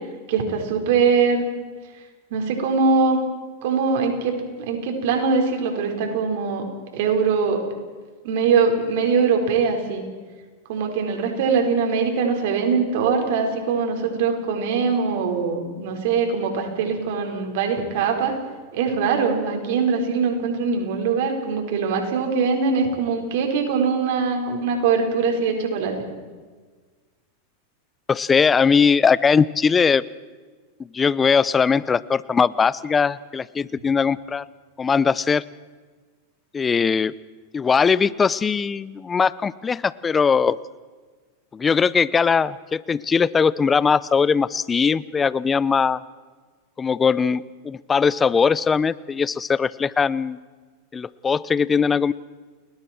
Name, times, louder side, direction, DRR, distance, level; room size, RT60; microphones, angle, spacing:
voice 1, 0.3-1.4 2.3-3.2 3.6-6.6 6.9-7.6 8.2-10.0 10.7-18.3 18.7-25.9, right 5 dB, 65° right, 3 dB, 5.0 m, -22 dB
voice 2, 28.1-30.0 30.9-34.5 34.8-35.4 36.5-37.1 37.5-40.6 41.5-46.0 46.8-50.4 50.9-52.1, left 6 dB, 20° left, 19 dB, 0.7 m, -20 dB
30.0 x 21.0 x 4.6 m, 1.4 s
hypercardioid pair, 105°, 0 cm